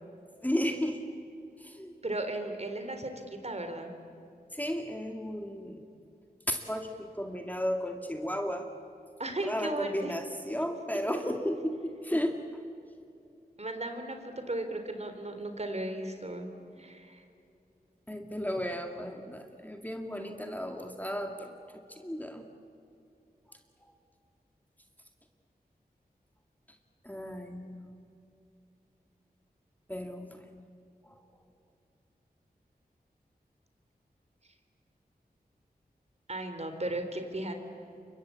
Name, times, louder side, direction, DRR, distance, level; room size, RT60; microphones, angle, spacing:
voice 1, 0.4-1.0 1.6-2.0 4.5-5.9 6.5-8.7 9.4-12.6 18.1-22.4 23.5-23.9 27.0-28.0 29.9-30.6 31.0-31.2, equal, 10° left, 4 dB, 2.2 m, -34 dB
voice 2, 2.0-3.9 9.2-10.1 13.6-16.5 16.8-17.2 36.3-37.5, right 1 dB, 40° right, 6 dB, 3.8 m, -36 dB
29.0 x 24.0 x 8.4 m, 2.6 s
wide cardioid pair, 55°, 16 cm